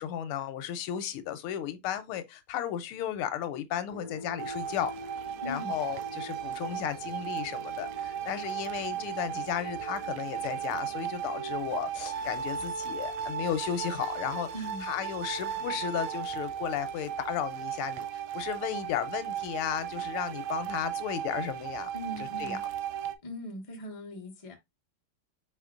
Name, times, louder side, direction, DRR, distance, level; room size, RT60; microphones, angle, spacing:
voice 1, 0.0-4.9 5.4-14.5 14.8-21.9 22.4-22.6, left 10 dB, 85° left, 1.6 m, -34 dB
sound 1, 3.9-11.0, left 1 dB, 50° right, 1.4 m, -48 dB
sound 2, 4.4-23.2, right 9 dB, 75° right, 1.3 m, -36 dB
voice 2, 5.4-5.8 14.5-14.9 21.9-22.6 23.2-24.6, equal, 25° left, 0.8 m, -40 dB
5.0 x 4.0 x 2.4 m
omnidirectional pair, 2.3 m